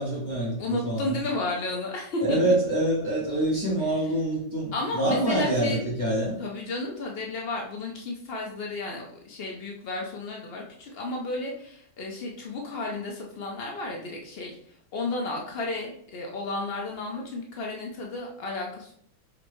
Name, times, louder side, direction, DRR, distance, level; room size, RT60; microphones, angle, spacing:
voice 1, 0.0-1.2 2.2-6.4, right 1 dB, 25° left, -7 dB, 1.3 m, -26 dB
voice 2, 0.6-2.5 3.8-3.9 4.7-5.8 6.4-14.6 14.9-18.9, left 2 dB, 90° left, 0 dB, 0.5 m, -33 dB
4.4 x 4.2 x 2.6 m, 0.67 s
omnidirectional pair, 1.9 m